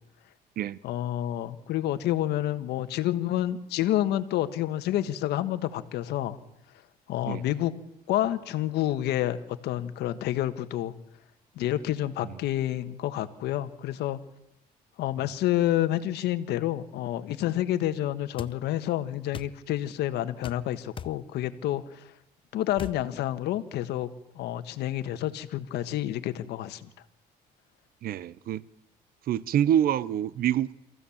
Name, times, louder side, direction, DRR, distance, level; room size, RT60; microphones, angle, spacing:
voice 1, 0.8-6.4 7.1-7.7 8.1-9.4 9.6-10.9 11.5-14.2 15.0-22.1 22.5-24.1 24.3-26.9, left 13 dB, 80° left, 1.4 m, -29 dB
sound 1, 18.4-18.6 19.3-19.6 20.4-20.6 21.0-21.2 22.8-23.0, left 6 dB, 30° left, 0.8 m, -38 dB
voice 2, 28.0-28.6 29.3-30.7, right 10 dB, 60° right, 0.7 m, -26 dB
26.0 x 15.5 x 7.2 m
cardioid pair, 110°, 17 cm